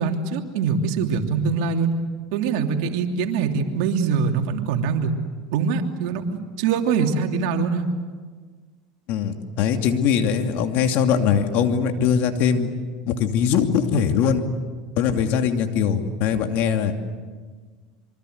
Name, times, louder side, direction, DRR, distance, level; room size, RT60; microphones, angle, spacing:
voice 1, 0.0-1.9 2.3-5.1 5.5-7.9, right 5 dB, 70° right, 3 dB, 3.0 m, -23 dB
voice 2, 9.1-12.7 13.1-14.4 15.0-17.0, left 7 dB, 60° left, 5 dB, 2.7 m, -21 dB
26.0 x 24.0 x 8.1 m, 1.5 s
hypercardioid pair, 100°, 4 cm